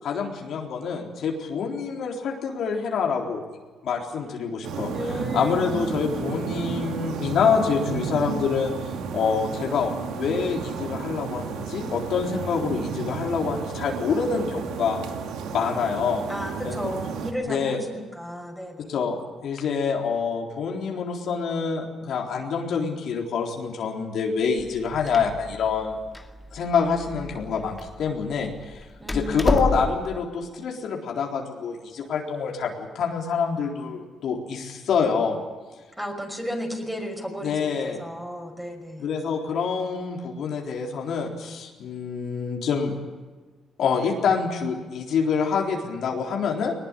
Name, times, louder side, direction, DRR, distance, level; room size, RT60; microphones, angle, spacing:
voice 1, 0.0-3.4 3.8-4.9 5.3-8.7 9.1-15.0 15.5-16.2 16.6-16.9 17.5-17.8 18.8-19.2 19.4-26.0 26.5-35.4 37.4-38.0 39.0-42.9 43.8-46.7, left 6 dB, 70° left, 0 dB, 3.9 m, -26 dB
sound 1, 4.6-17.3, right 6 dB, 90° right, 2.4 m, -32 dB
voice 2, 4.9-5.9 16.3-19.0 29.0-29.7 36.0-39.1, equal, 5° right, 3 dB, 5.8 m, -33 dB
Door, 24.6-30.2, left 2 dB, 10° left, 2.2 m, -31 dB
20.0 x 20.0 x 10.0 m, 1.4 s
cardioid pair, 90°, 0 cm